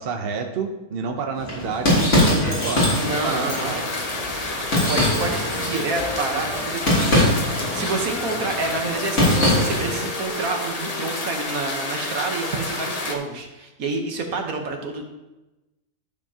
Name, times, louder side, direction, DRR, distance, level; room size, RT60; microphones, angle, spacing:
voice 1, 0.0-3.9, right 5 dB, 50° right, 4 dB, 0.8 m, -30 dB
sound 1, 1.4-10.0, left 1 dB, 50° left, 3.2 m, -23 dB
sound 2, 2.9-13.2, left 2 dB, 30° left, 0.7 m, -30 dB
voice 2, 3.0-3.7 4.7-15.0, right 3 dB, 65° right, 3 dB, 1.5 m, -28 dB
Wind instrument woodwind instrument, 4.1-7.5 8.0-11.6, left 3 dB, 70° left, 0.3 m, -37 dB
12.5 x 6.9 x 2.9 m, 1.0 s
omnidirectional pair, 1.6 m